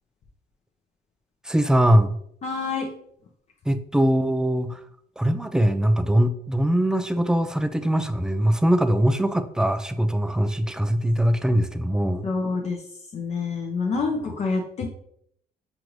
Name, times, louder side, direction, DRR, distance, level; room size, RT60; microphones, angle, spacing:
voice 1, 1.4-2.2 3.7-4.8 5.2-12.3, equal, 5° right, 10 dB, 0.3 m, -22 dB
voice 2, 2.4-2.9 12.2-12.8 13.1-14.9, left 4 dB, 45° left, 0 dB, 0.6 m, -27 dB
6.2 x 2.5 x 3.0 m, 0.71 s
cardioid pair, 95°, 16 cm